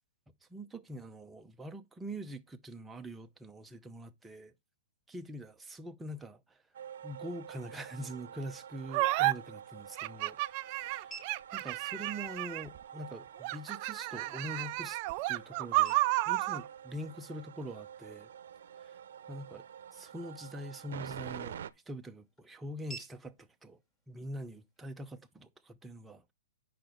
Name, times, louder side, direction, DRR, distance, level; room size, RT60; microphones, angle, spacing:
voice 1, 0.5-4.5 5.1-6.6 7.0-10.4 11.5-15.0 15.3-16.0 16.2-18.3 18.8-18.9 19.3-19.7 19.9-23.8 24.1-26.3, right 1 dB, 5° right, 0.7 m, -44 dB
sound 1, 6.7-21.7, right 9 dB, 65° right, 0.7 m, -48 dB
sound 2, 8.9-9.3 10.0-12.8 13.4-16.6, right 18 dB, 35° right, 0.4 m, -31 dB
sound 3, 9.3-25.3, right 4 dB, 15° left, 1.9 m, -58 dB
8.6 x 5.8 x 3.9 m
hypercardioid pair, 150°, 0 cm